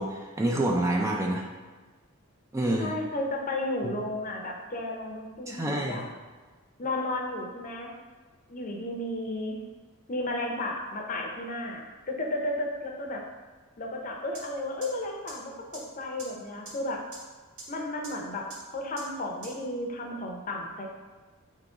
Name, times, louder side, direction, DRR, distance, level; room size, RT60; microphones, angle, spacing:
voice 1, 0.0-1.4 2.5-2.9 3.8-3.9 5.5-6.0, right 1 dB, 15° right, -1 dB, 0.4 m, -27 dB
voice 2, 2.8-6.0 6.8-7.9 8.5-9.6 10.1-13.2 13.8-17.0 17.7-20.9, left 1 dB, 40° left, 1 dB, 0.6 m, -33 dB
sound 1, 14.3-14.4 14.8-14.9 15.3-15.4 15.7-15.8 16.2-16.3 16.7-16.8 17.1-17.2 17.6-17.7 18.0-18.1 18.5-18.6 19.0-19.1 19.4-19.5, right 3 dB, 85° right, 1.5 m, -42 dB
3.7 x 2.9 x 4.8 m, 1.3 s
head